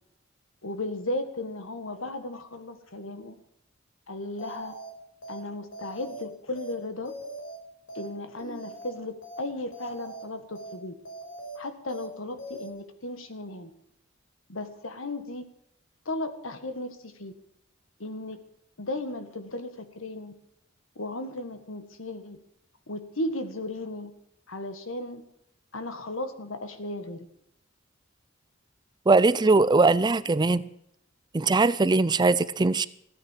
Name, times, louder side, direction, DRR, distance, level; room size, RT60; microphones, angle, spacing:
voice 1, 0.6-3.4 4.1-4.7 5.3-7.1 8.0-10.9 11.6-13.7 14.5-15.4 16.1-17.3 18.0-18.4 18.8-20.3 21.0-22.4 22.9-24.1 24.5-25.2 25.7-27.3, left 1 dB, 80° left, 9 dB, 1.7 m, -35 dB
sound 1, 4.4-4.9 5.2-5.4 5.7-6.2 6.5-6.7 7.0-7.6 7.9-8.1 8.4-8.9 9.2-9.4 9.7-10.2 10.5-10.7 11.0-11.6 11.9-12.1 12.4-12.7, right 2 dB, 65° left, 4.9 m, -41 dB
voice 2, 29.1-30.6 31.3-32.9, right 3 dB, 20° right, 17 dB, 0.4 m, -21 dB
15.0 x 9.8 x 7.4 m, 0.76 s
head